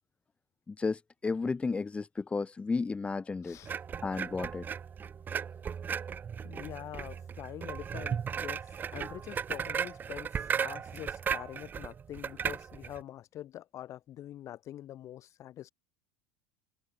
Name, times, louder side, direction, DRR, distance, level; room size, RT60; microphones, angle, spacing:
voice 1, 0.7-3.6 4.0-4.7, left 4 dB, 15° left, 2.6 m, -33 dB
voice 2, 3.4-3.7 6.4-15.7, left 12 dB, 40° left, 6.7 m, -45 dB
sound 1, 3.6-13.0, right 7 dB, 25° right, 1.1 m, -36 dB
supercardioid pair, 125°, 8 cm